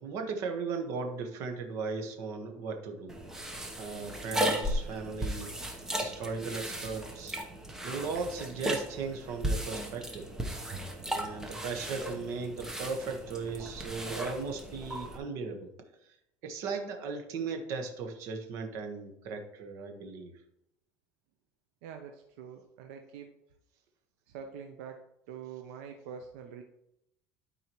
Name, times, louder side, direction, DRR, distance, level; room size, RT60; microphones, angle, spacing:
voice 1, 0.0-3.2 3.8-5.5 6.0-7.4 7.8-10.3 11.1-15.7 16.0-16.2 16.4-20.3, right 4 dB, 55° right, 5 dB, 1.3 m, -37 dB
sound 1, 3.1-15.2, right 1 dB, 10° right, 1.0 m, -36 dB
voice 2, 21.8-23.3 24.3-26.6, right 7 dB, 85° right, 5 dB, 0.7 m, -45 dB
12.5 x 4.7 x 3.1 m, 0.82 s
cardioid pair, 145°, 6 cm